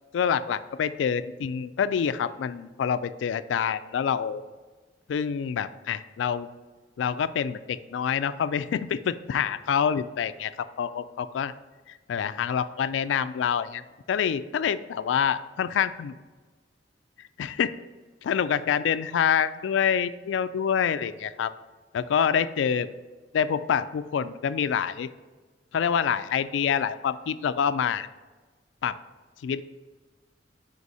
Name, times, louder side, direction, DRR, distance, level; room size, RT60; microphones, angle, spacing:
voice 1, 0.1-4.5 5.1-6.5 7.0-10.5 10.8-11.5 12.1-13.8 14.1-16.1 17.4-17.7 18.2-21.5 21.9-22.9 23.3-25.1 25.7-28.1 28.8-29.0 29.4-29.6, left 7 dB, 75° left, 13 dB, 0.3 m, -26 dB
5.1 x 4.1 x 4.8 m, 1.3 s
head